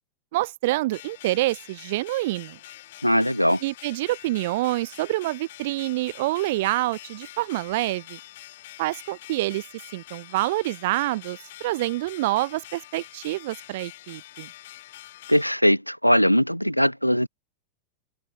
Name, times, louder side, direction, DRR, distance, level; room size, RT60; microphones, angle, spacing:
voice 1, 0.3-2.6 3.6-8.2 8.8-9.6 9.9-14.5, right 18 dB, 50° right, 0.5 m, -27 dB
sound 1, 0.9-15.5, left 15 dB, 55° left, 3.5 m, -45 dB
voice 2, 3.0-3.6 15.3-17.3, equal, 90° left, 0.3 m, -20 dB
figure-of-eight pair, 90°, 0 cm